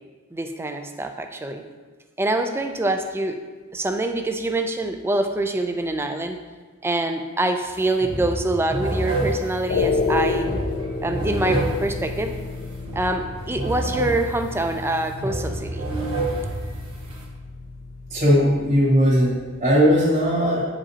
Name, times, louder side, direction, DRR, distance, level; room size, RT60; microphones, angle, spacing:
voice 1, 0.3-1.6 2.2-3.4 3.7-6.4 6.8-10.5 11.0-12.4 12.9-15.9 16.4-16.6, right 2 dB, 10° right, 6 dB, 0.4 m, -25 dB
sound 1, 7.6-7.7 8.0-17.2, right 1 dB, 85° right, 1.4 m, -29 dB
sound 2, 9.7-19.9, left 3 dB, 55° left, 0.5 m, -31 dB
voice 2, 18.1-20.6, equal, 30° right, -11 dB, 1.6 m, -18 dB
8.7 x 5.0 x 2.8 m, 1.4 s
head